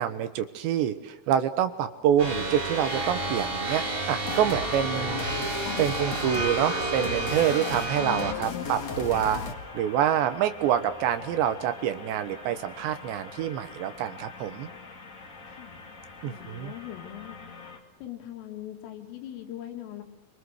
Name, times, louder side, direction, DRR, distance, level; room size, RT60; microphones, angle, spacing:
voice 1, 0.0-5.3 5.8-9.4 9.7-14.7 16.2-16.7, right 10 dB, 75° right, 10 dB, 3.0 m, -27 dB
sound 1, 2.2-8.3, right 2 dB, 20° right, 1.4 m, -31 dB
sound 2, 4.2-9.5, left 5 dB, 55° left, 1.9 m, -35 dB
sound 3, 6.2-17.8, left 3 dB, 35° left, 1.4 m, -45 dB
voice 2, 8.0-8.7 15.6-15.8 16.2-17.4 18.0-20.0, left 13 dB, 85° left, 4 dB, 4.7 m, -40 dB
29.5 x 24.0 x 6.5 m, 1.0 s
omnidirectional pair, 5.7 m